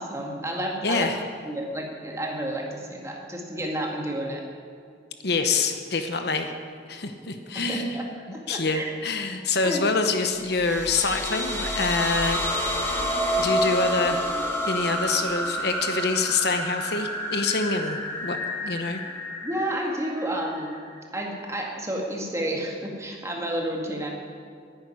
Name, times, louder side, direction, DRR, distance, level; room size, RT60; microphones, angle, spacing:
voice 1, 0.0-4.4 7.5-8.0 8.3-8.9 9.6-9.8 19.4-20.8 21.1-24.1, right 1 dB, 15° right, -1 dB, 2.1 m, -31 dB
voice 2, 0.8-1.2 5.2-6.5 6.9-12.4 13.4-14.2 14.6-18.4 18.6-19.0, left 4 dB, 65° left, 6 dB, 1.1 m, -26 dB
sound 1, 10.4-21.0, equal, 15° left, 2.0 m, -29 dB
11.0 x 9.3 x 9.9 m, 2.3 s
head